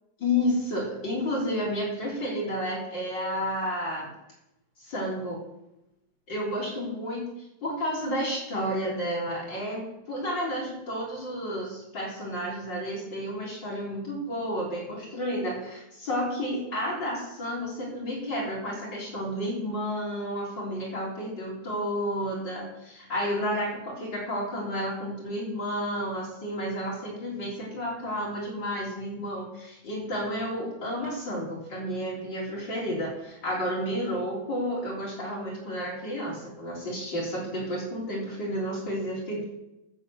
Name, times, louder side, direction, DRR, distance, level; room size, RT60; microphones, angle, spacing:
voice 1, 0.2-4.1 4.8-5.4 6.3-7.2 7.6-39.5, equal, 65° left, -4 dB, 4.3 m, -31 dB
13.5 x 7.2 x 7.9 m, 0.87 s
omnidirectional pair, 2.2 m